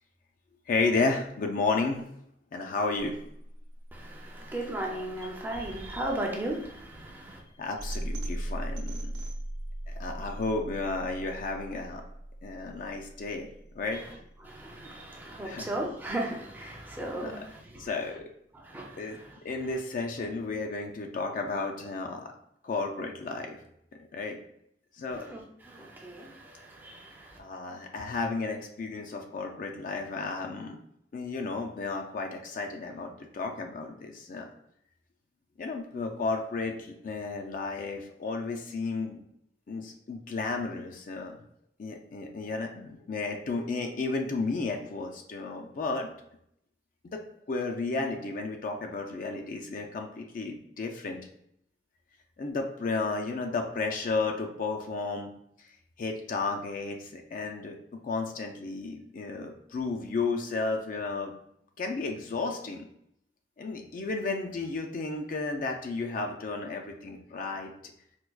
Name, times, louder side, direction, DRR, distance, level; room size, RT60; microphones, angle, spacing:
voice 1, 0.7-2.1 2.5-3.2 7.6-9.3 9.9-12.0 12.4-13.5 13.8-14.0 15.4-15.7 17.2-17.3 17.8-18.2 19.0-19.2 19.4-22.3 22.6-23.6 24.1-24.4 25.0-25.3 27.4-30.8 31.1-34.5 35.6-39.2 39.7-41.4 41.8-46.1 47.1-47.2 47.5-51.2 52.4-55.3 56.0-57.8 58.0-61.3 61.8-62.8 63.6-67.7, left 3 dB, 50° left, 3 dB, 0.4 m, -33 dB
sound 1, 2.9-15.0, right 1 dB, 85° right, 0.7 m, -40 dB
voice 2, 3.9-7.4 13.9-18.2 18.5-19.8 25.1-27.4, right 1 dB, 10° right, -1 dB, 0.5 m, -37 dB
4.5 x 2.2 x 2.3 m, 0.73 s
head